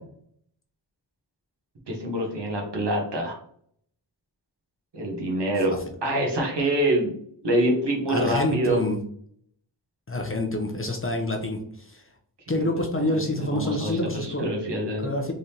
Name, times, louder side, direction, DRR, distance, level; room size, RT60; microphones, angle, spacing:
voice 1, 1.9-3.4 4.9-5.7 6.0-7.1 7.4-8.8 12.5-12.7 13.0-15.1, right 1 dB, 65° right, 1 dB, 1.2 m, -26 dB
voice 2, 8.1-9.0 10.1-12.0 12.5-14.5 15.0-15.3, left 1 dB, 30° left, 2 dB, 0.7 m, -27 dB
3.8 x 3.3 x 2.8 m, 0.63 s
wide cardioid pair, 100°, 45 cm